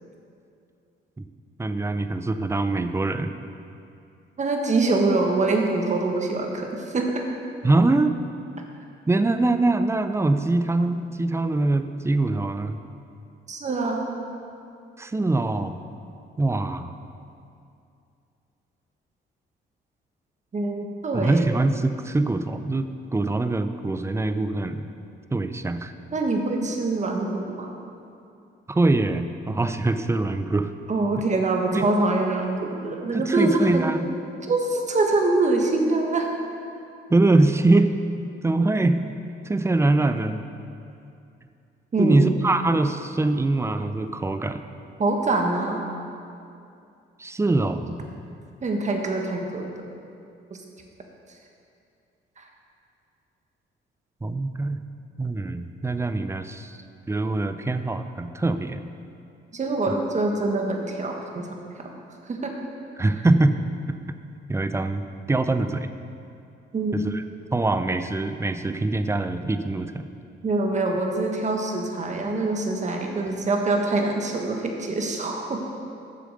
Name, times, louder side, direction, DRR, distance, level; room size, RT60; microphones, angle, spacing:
voice 1, 1.6-3.3 7.6-8.1 9.1-12.8 15.0-15.8 16.4-16.9 21.1-24.8 25.3-25.9 28.7-30.7 31.7-31.8 33.1-34.1 37.1-37.9 38.4-39.0 39.5-40.4 42.0-44.6 47.2-48.0 54.2-54.8 55.2-56.8 57.1-58.8 63.0-63.6 64.5-65.0 65.3-65.9 66.9-67.2 67.5-70.1, right 2 dB, 15° right, 9 dB, 0.5 m, -23 dB
voice 2, 4.4-7.2 13.5-14.1 20.5-21.4 26.1-27.7 30.9-33.9 34.5-36.3 41.9-42.4 45.0-45.9 48.6-49.7 50.5-50.6 52.4-52.5 59.5-61.9 62.3-62.5 66.7-67.0 70.4-75.6, right 2 dB, 35° right, 2 dB, 1.4 m, -24 dB
7.8 x 6.9 x 6.5 m, 2.5 s
cardioid pair, 90°, 20 cm